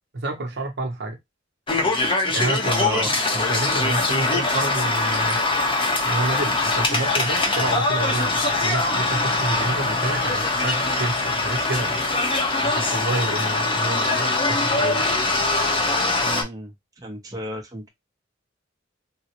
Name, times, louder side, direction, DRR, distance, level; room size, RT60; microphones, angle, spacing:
voice 1, 0.1-1.2 2.3-5.4 6.0-12.0 12.6-15.1, right 2 dB, 60° right, 0.8 m, -29 dB
sound 1, 1.7-16.4, left 2 dB, 25° left, 0.7 m, -22 dB
voice 2, 16.2-17.9, right 1 dB, 20° right, 0.6 m, -34 dB
3.7 x 2.1 x 2.8 m
head